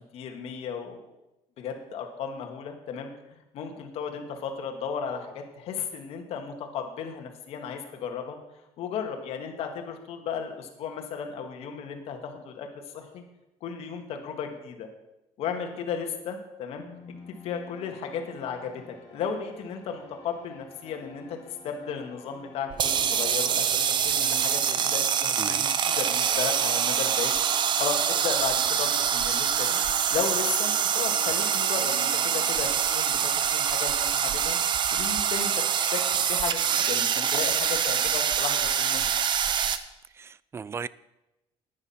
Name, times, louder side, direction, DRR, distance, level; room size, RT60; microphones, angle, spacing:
voice 1, 0.1-1.0 1.6-3.1 3.5-8.4 8.8-12.7 12.9-13.2 13.6-14.9 15.4-16.8 17.4-21.4 21.6-27.3 27.8-29.8 30.1-34.6 34.9-35.6 35.9-39.0, left 6 dB, 65° left, 1.9 m, -35 dB
sound 1, 16.8-33.5, left 4 dB, 40° left, 3.4 m, -50 dB
sound 2, 22.7-39.8, right 8 dB, 45° right, 0.8 m, -25 dB
voice 2, 40.2-40.9, right 6 dB, 25° right, 0.3 m, -36 dB
10.0 x 9.8 x 5.8 m
cardioid pair, 125°, 11 cm